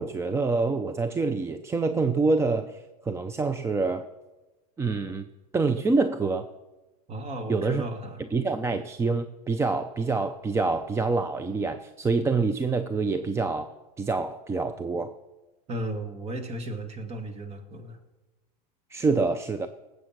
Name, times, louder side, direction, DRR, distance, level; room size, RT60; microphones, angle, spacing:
voice 1, 0.0-4.1 4.8-5.3 5.5-6.5 7.5-7.8 8.3-15.1 18.9-19.7, right 3 dB, 15° right, 10 dB, 0.5 m, -26 dB
voice 2, 7.1-8.2 15.7-18.0, right 1 dB, 30° right, 6 dB, 2.1 m, -35 dB
19.0 x 8.3 x 6.0 m, 1.1 s
supercardioid pair, 120°, 20 cm